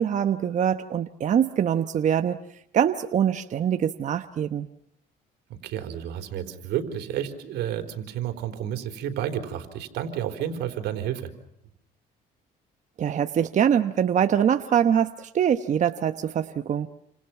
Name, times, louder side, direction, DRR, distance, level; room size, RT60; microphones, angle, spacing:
voice 1, 0.0-2.4 2.7-4.7 13.0-16.9, right 9 dB, 45° right, 9 dB, 1.1 m, -23 dB
voice 2, 5.6-11.3, right 10 dB, 85° right, 6 dB, 3.9 m, -31 dB
29.5 x 27.0 x 6.0 m, 0.73 s
cardioid pair, 110°, 17 cm